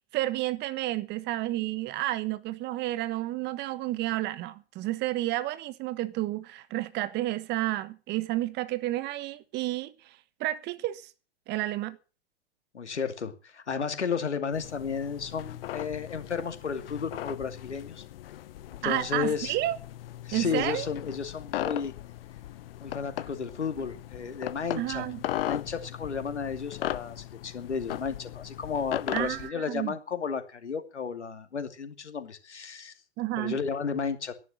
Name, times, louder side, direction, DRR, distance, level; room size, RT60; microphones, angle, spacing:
voice 1, 0.1-11.1 11.5-12.0 18.8-19.8 20.3-20.9 24.8-25.2 29.1-29.9 33.2-33.6, right 16 dB, 30° right, 1.4 m, -31 dB
voice 2, 12.7-18.0 18.7-19.6 20.2-21.9 22.8-25.1 25.4-32.9 33.4-34.3, left 6 dB, 80° left, 2.6 m, -33 dB
sound 1, 14.5-29.5, left 13 dB, 55° left, 0.9 m, -38 dB
13.0 x 11.0 x 7.5 m
hypercardioid pair, 110°, 34 cm